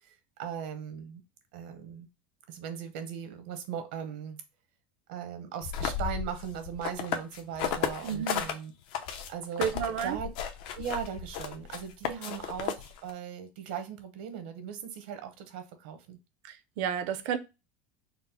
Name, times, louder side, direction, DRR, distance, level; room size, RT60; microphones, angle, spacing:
voice 1, 0.0-1.2 1.5-2.1 2.5-4.4 5.1-8.7 9.3-9.7 10.0-10.3 10.7-16.2, right 8 dB, 75° right, 0.9 m, -38 dB
sound 1, 5.6-8.5 8.9-13.1, left 8 dB, 60° left, 0.6 m, -34 dB
voice 2, 8.0-8.4 9.6-10.2 16.4-17.4, right 8 dB, 50° right, 0.5 m, -31 dB
4.1 x 2.1 x 4.2 m
cardioid pair, 175°, 5 cm